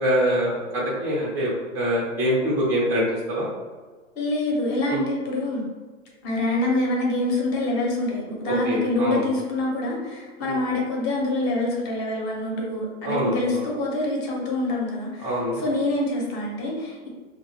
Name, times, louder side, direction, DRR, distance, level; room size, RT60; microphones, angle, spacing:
voice 1, 0.0-3.5 4.9-5.0 8.4-9.3 10.4-10.6 13.0-13.6 15.2-15.6, equal, 5° right, -6 dB, 0.4 m, -24 dB
voice 2, 4.2-5.6 6.2-17.1, left 2 dB, 25° left, -2 dB, 0.7 m, -26 dB
2.3 x 2.0 x 3.2 m, 1.4 s
hypercardioid pair, 115°, 38 cm